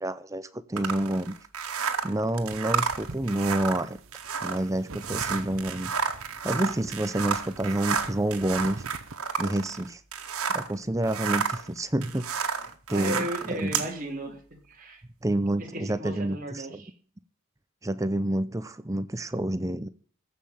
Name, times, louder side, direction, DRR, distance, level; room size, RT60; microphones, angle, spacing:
voice 1, 0.0-1.3 2.0-4.0 4.4-5.9 6.4-8.8 9.4-10.0 10.5-12.3 12.6-13.8 15.2-16.6 17.8-19.9, right 1 dB, 15° right, 0.6 m, -28 dB
sound 1, 0.8-10.7 11.0-13.9, right 6 dB, 85° right, 1.8 m, -31 dB
sound 2, 2.4-9.2, right 3 dB, 65° right, 0.9 m, -45 dB
voice 2, 12.9-14.4 14.7-15.0 15.6-16.9, right 1 dB, 40° right, 3.2 m, -35 dB
15.0 x 5.7 x 8.6 m
head